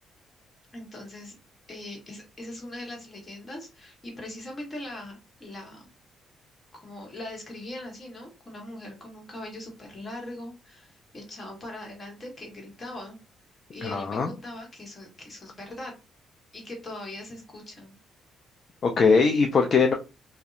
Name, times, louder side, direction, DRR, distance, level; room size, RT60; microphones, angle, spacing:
voice 1, 0.7-1.3 1.7-5.9 6.7-13.2 13.7-15.9 16.5-18.0, left 1 dB, 30° left, 1 dB, 1.2 m, -40 dB
voice 2, 13.8-14.3 18.8-19.9, left 4 dB, 50° left, 4 dB, 0.3 m, -21 dB
2.6 x 2.1 x 2.4 m, 0.28 s
cardioid pair, 90°, 0 cm